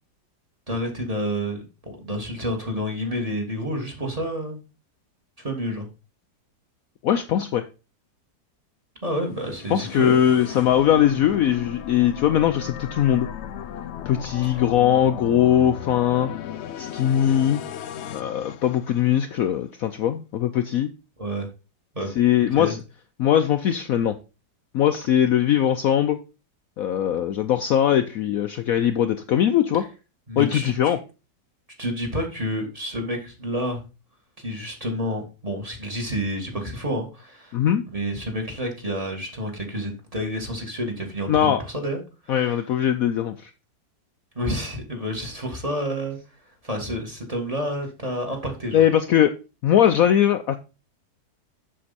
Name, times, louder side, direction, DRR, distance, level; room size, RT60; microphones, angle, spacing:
voice 1, 0.7-4.6 5.4-5.9 9.0-10.4 14.4-14.6 21.2-21.5 21.9-22.1 22.5-22.7 29.7-29.8 30.3-31.0 31.8-33.8 34.4-37.6 37.9-42.0 42.2-42.6 44.4-46.2 46.6-48.8, equal, 20° right, 3 dB, 1.9 m, -29 dB
voice 2, 7.0-7.6 9.7-13.3 14.1-16.3 16.8-17.6 18.1-20.9 22.2-22.8 23.2-24.2 24.7-26.2 26.8-29.9 30.4-31.0 37.5-37.8 41.3-41.6 42.3-43.5 48.7-49.4 49.6-50.6, left 10 dB, 65° left, 9 dB, 0.9 m, -20 dB
sound 1, 9.2-19.5, left 10 dB, 85° left, 0.5 m, -36 dB
7.5 x 6.8 x 4.1 m, 0.30 s
omnidirectional pair, 1.8 m